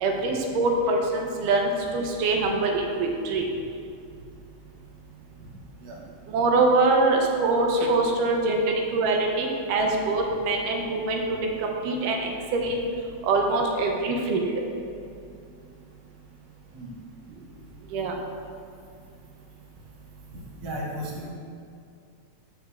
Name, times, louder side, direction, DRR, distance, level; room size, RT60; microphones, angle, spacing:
voice 1, 0.0-3.4 6.3-8.6 8.9-12.8 13.2-14.5 17.9-18.2, right 3 dB, 90° right, 1 dB, 2.4 m, -24 dB
voice 2, 20.6-21.3, equal, 65° right, -3 dB, 2.1 m, -35 dB
13.0 x 5.1 x 2.5 m, 2.4 s
omnidirectional pair, 3.6 m